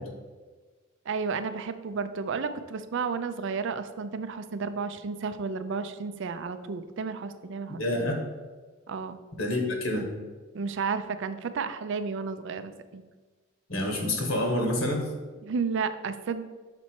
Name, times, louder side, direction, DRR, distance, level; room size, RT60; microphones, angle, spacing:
voice 1, 1.1-7.8 8.9-9.2 10.5-13.0 15.4-16.5, right 5 dB, 60° right, 11 dB, 0.4 m, -32 dB
voice 2, 7.8-8.2 9.4-10.1 13.7-15.0, left 1 dB, 65° left, 2 dB, 1.3 m, -27 dB
6.0 x 4.2 x 4.5 m, 1.3 s
head